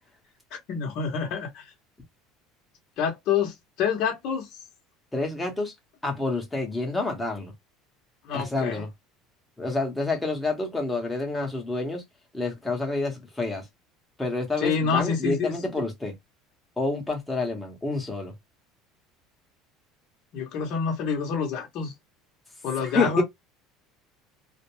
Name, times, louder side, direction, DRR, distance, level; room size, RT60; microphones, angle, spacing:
voice 1, 0.7-1.7 3.0-4.6 8.2-8.8 14.6-15.6 20.3-21.9 22.6-23.2, left 6 dB, 55° left, 0.8 m, -27 dB
voice 2, 5.1-5.7 6.0-7.5 8.3-8.9 9.6-12.0 12.3-13.6 14.2-16.1 16.8-18.3 22.8-23.2, left 2 dB, 5° left, 0.9 m, -28 dB
2.5 x 2.1 x 2.9 m
cardioid pair, 145°, 0 cm